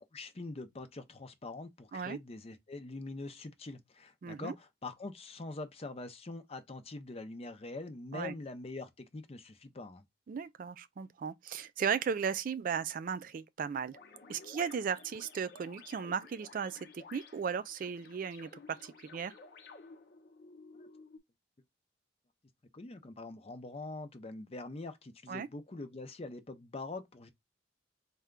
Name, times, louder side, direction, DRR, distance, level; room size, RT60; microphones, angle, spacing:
voice 1, 0.0-10.0 20.8-20.9 22.7-27.3, left 2 dB, 30° left, 0.6 m, -44 dB
voice 2, 4.2-4.5 8.1-8.3 10.3-14.0 14.3-19.3 25.3-25.5, right 6 dB, 45° right, 0.3 m, -36 dB
sound 1, 13.9-21.2, left 4 dB, 60° left, 0.8 m, -54 dB
4.2 x 2.3 x 3.6 m
head